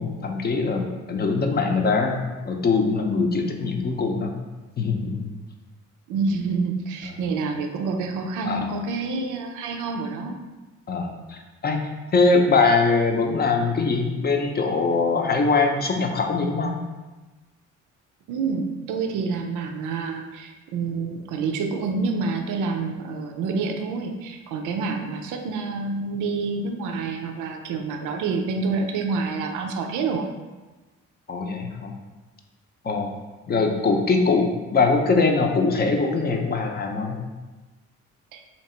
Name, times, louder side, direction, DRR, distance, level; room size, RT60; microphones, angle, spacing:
voice 1, 0.0-4.4 4.8-5.3 8.4-8.8 10.9-11.8 12.1-16.8 31.3-31.9 32.8-33.1 33.5-37.3, left 4 dB, 30° left, 3 dB, 0.6 m, -22 dB
voice 2, 6.1-10.4 18.3-30.3 38.3-38.4, right 4 dB, 85° right, 4 dB, 0.5 m, -28 dB
2.9 x 2.8 x 4.2 m, 1.2 s
cardioid pair, 90°, 30 cm